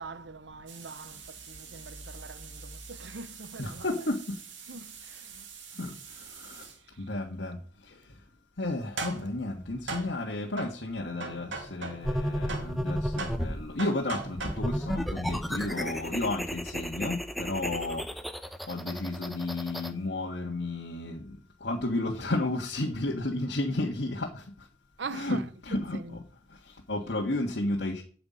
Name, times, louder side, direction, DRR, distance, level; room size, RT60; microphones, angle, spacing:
voice 1, 0.0-4.1 4.6-5.5 6.9-7.1 17.9-18.0 25.0-26.2, right 4 dB, 70° right, 0.8 m, -43 dB
sound 1, 0.7-6.8 8.7-12.2 12.5-16.1, right 3 dB, 85° right, 2.4 m, -42 dB
voice 2, 3.6-4.3 5.8-5.9 6.5-6.6 7.0-7.6 8.6-18.0 18.7-21.2 21.6-24.3 25.1-26.2 26.9-28.0, left 2 dB, 65° left, 1.6 m, -32 dB
sound 2, 12.0-13.6 14.4-19.9, equal, ahead, 0.8 m, -33 dB
9.7 x 6.0 x 8.6 m
head